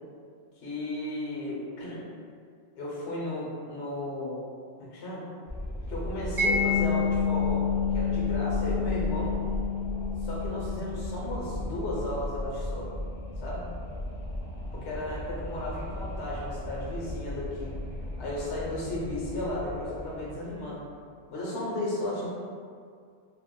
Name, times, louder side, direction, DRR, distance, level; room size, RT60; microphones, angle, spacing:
voice 1, 0.6-2.0 2.8-4.5 4.8-5.2 5.9-9.4 10.2-12.9 13.4-13.7 14.7-17.7 18.2-20.8 21.3-22.3, left 1 dB, 85° left, -5 dB, 1.0 m, -34 dB
Wind, 5.5-20.8, left 1 dB, 50° left, 0.5 m, -36 dB
Mallet percussion, 6.4-13.1, left 6 dB, 50° right, 0.6 m, -30 dB
2.4 x 2.3 x 3.6 m, 2.2 s
omnidirectional pair, 1.1 m